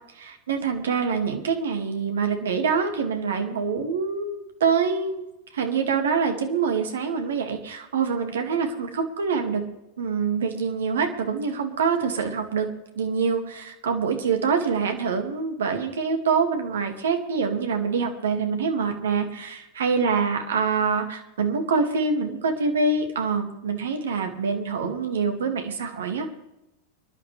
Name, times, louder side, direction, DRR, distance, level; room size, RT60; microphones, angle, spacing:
voice 1, 0.1-5.2 5.5-9.6 10.0-12.7 13.0-26.3, right 5 dB, 65° right, 5 dB, 2.1 m, -25 dB
25.5 x 11.5 x 3.3 m, 0.92 s
figure-of-eight pair, 90°, 0 cm